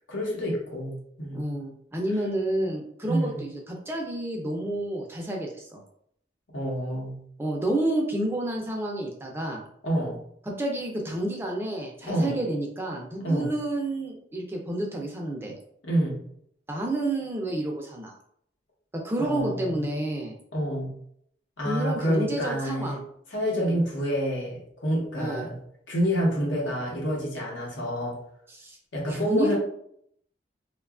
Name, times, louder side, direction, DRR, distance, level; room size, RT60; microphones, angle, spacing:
voice 1, 0.1-1.4 3.0-3.4 6.5-7.2 9.8-10.2 12.0-12.3 13.2-13.5 15.8-16.2 19.2-19.7 20.5-20.9 21.6-23.0 23.3-25.5 25.9-28.2 28.9-29.5, equal, 90° left, -2 dB, 0.9 m, -28 dB
voice 2, 1.3-5.8 7.4-9.6 10.5-15.5 16.7-18.1 19.0-20.3 21.6-23.0 23.6-23.8 25.2-25.5 28.5-28.8 29.1-29.5, right 1 dB, 15° right, 0 dB, 0.3 m, -30 dB
2.8 x 2.2 x 2.3 m, 0.69 s
head